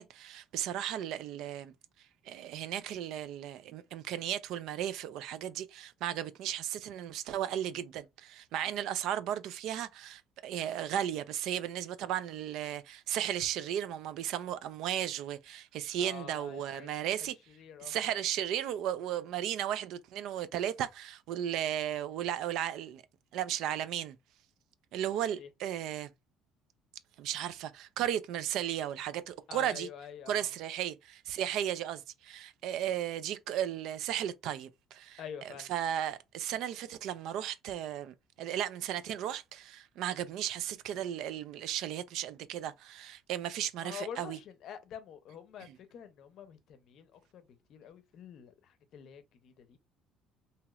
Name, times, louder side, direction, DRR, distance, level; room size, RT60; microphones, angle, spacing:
voice 1, 0.0-1.7 2.3-17.3 17.8-23.0 23.3-24.2 24.9-26.1 27.2-29.9 30.3-35.2 35.7-44.4, right 10 dB, 65° right, 0.3 m, -35 dB
voice 2, 16.0-18.0 25.4-25.5 29.5-30.5 35.2-35.7 43.8-49.8, left 8 dB, 50° left, 0.6 m, -47 dB
3.0 x 2.8 x 2.3 m
cardioid pair, 160°, 0 cm